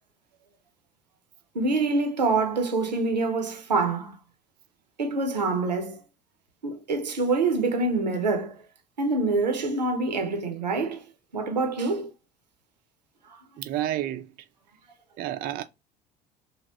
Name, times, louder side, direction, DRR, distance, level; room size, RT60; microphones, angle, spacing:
voice 1, 1.5-4.2 5.0-6.0 6.6-8.6 9.0-11.0 11.3-12.1 13.3-13.4, right 3 dB, 85° right, 0.6 m, -26 dB
voice 2, 13.6-14.3 15.2-15.6, right 12 dB, 45° right, 0.4 m, -30 dB
2.8 x 2.8 x 2.8 m
figure-of-eight pair, 55°, 21 cm